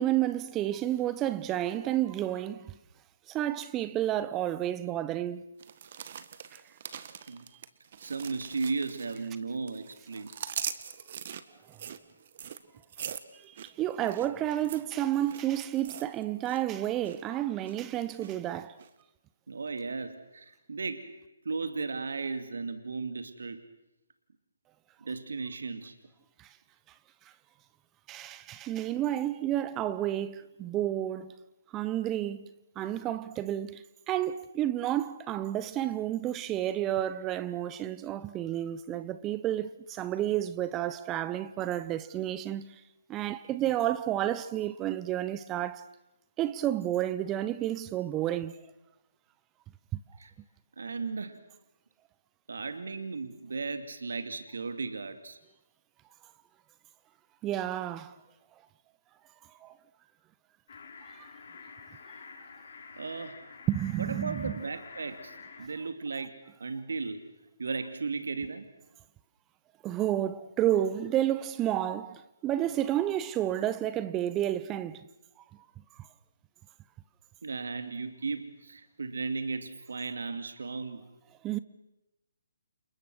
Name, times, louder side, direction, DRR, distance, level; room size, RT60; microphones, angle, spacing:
voice 1, 0.0-2.8 3.3-5.4 6.5-6.6 11.7-11.8 13.3-18.8 26.4-26.5 28.1-31.3 31.7-32.5 32.8-42.7 43.1-45.9 46.4-48.6 49.9-50.0 57.4-58.1 59.6-59.7 63.7-64.5 69.8-75.0 81.4-81.6, right 12 dB, 15° right, 0.9 m, -31 dB
sound 1, 5.6-9.4 9.7-16.6 16.9-17.2 17.6-18.3 18.8-18.9, right 8 dB, 45° right, 1.7 m, -42 dB
voice 2, 8.0-10.3 19.5-21.2 21.4-23.6 25.0-25.9 50.2-50.3 50.8-51.4 52.5-55.4 63.0-63.4 64.0-67.3 67.6-68.7 77.4-81.0, right 4 dB, 70° right, 2.6 m, -35 dB
sound 2, 60.7-65.7, left 5 dB, 50° left, 6.9 m, -49 dB
30.0 x 29.0 x 6.3 m
figure-of-eight pair, 145°, 0 cm